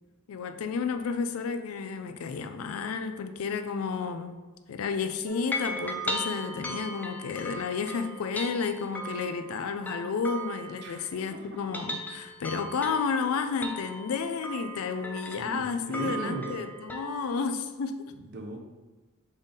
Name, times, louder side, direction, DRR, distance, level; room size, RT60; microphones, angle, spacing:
voice 1, 0.3-4.4 4.7-18.0, left 5 dB, 85° left, 7 dB, 0.4 m, -31 dB
sound 1, 5.3-11.2 11.6-17.3, equal, 10° left, 0.3 m, -38 dB
voice 2, 15.3-15.6 15.9-16.5 18.2-18.6, right 2 dB, 55° right, 3 dB, 0.6 m, -37 dB
4.0 x 3.5 x 3.5 m, 1.2 s
head